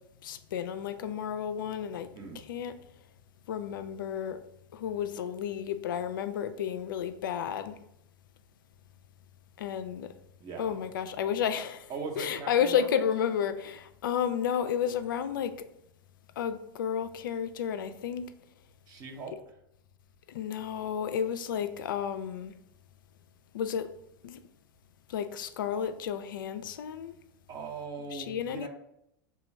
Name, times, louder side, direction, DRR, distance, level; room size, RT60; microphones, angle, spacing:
voice 1, 0.2-2.1 2.5-2.7 3.5-4.4 4.7-7.8 9.6-10.1 10.6-15.5 16.4-18.3 20.3-22.5 23.5-23.9 24.2-24.4 25.1-27.2 28.1-28.7, left 8 dB, 75° left, 11 dB, 0.4 m, -32 dB
voice 2, 10.4-10.7 11.9-13.0 18.9-19.4 27.5-28.7, right 4 dB, 35° right, 3 dB, 0.7 m, -40 dB
3.0 x 2.2 x 4.2 m, 0.79 s
hypercardioid pair, 95°, 11 cm